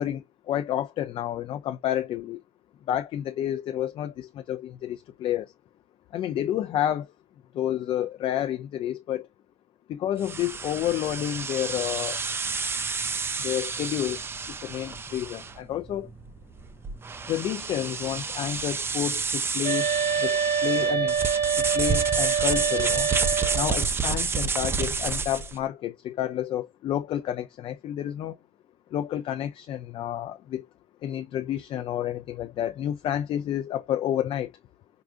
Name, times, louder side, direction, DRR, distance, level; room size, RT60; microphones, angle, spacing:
voice 1, 0.0-2.4 2.9-5.5 6.1-7.1 7.5-9.3 9.9-12.2 13.4-14.2 14.5-16.1 17.2-21.2 21.6-23.1 23.5-28.4 28.9-30.7 31.0-34.5, left 11 dB, 50° left, 0.4 m, -30 dB
sound 1, 10.2-25.6, right 5 dB, 20° right, 0.4 m, -30 dB
sound 2, 19.6-23.8, right 6 dB, 65° right, 1.6 m, -25 dB
4.8 x 2.4 x 2.4 m
cardioid pair, 125°, 12 cm